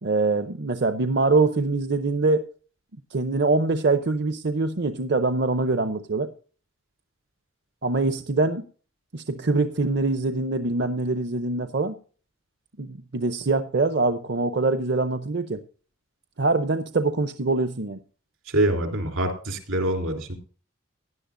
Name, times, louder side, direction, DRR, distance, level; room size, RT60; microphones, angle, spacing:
voice 1, 0.0-2.4 3.1-6.3 7.8-8.6 9.1-11.9 12.8-15.6 16.4-18.0, right 3 dB, 55° right, 9 dB, 0.6 m, -24 dB
voice 2, 18.5-20.3, right 1 dB, 80° right, 4 dB, 3.3 m, -25 dB
17.0 x 11.0 x 2.6 m, 0.40 s
head